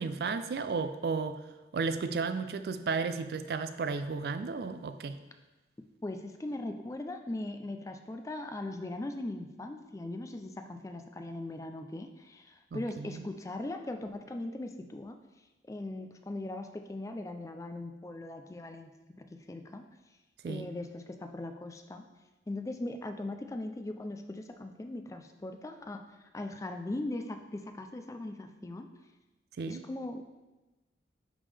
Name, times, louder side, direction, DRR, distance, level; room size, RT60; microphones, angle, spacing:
voice 1, 0.0-1.4 1.7-5.2 12.7-13.2 20.4-20.7 29.6-29.8, right 4 dB, 60° right, 11 dB, 0.3 m, -33 dB
voice 2, 6.0-15.2 15.7-18.9 19.5-19.8 20.5-22.0 22.5-26.0 26.3-28.9 29.7-30.2, left 2 dB, 20° left, 6 dB, 0.3 m, -39 dB
10.0 x 3.6 x 3.3 m, 1.1 s
head